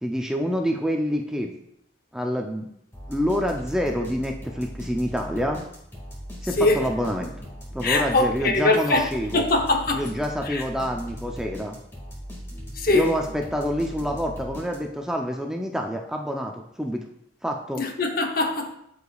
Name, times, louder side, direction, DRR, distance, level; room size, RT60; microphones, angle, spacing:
voice 1, 0.0-1.5 2.1-2.7 3.1-5.6 6.4-7.5 7.7-9.5 9.9-11.8 12.9-17.0 17.4-17.8, equal, 5° right, 0.5 m, -27 dB
sound 1, 2.9-15.1, equal, 15° left, 1.9 m, -39 dB
voice 2, 6.6-6.9 7.8-10.1 10.4-10.6 12.7-13.1 17.8-18.7, left 2 dB, 50° left, 0.8 m, -22 dB
13.0 x 4.9 x 2.3 m
head